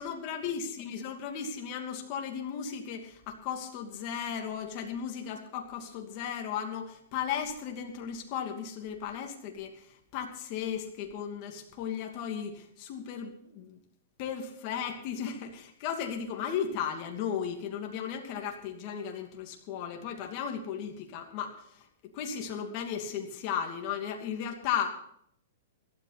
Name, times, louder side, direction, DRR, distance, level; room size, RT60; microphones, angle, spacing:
voice 1, 0.0-13.8 14.2-21.8 22.1-24.9, left 8 dB, 40° left, 3 dB, 2.6 m, -35 dB
17.5 x 13.0 x 4.2 m, 0.68 s
hypercardioid pair, 155°, 0 cm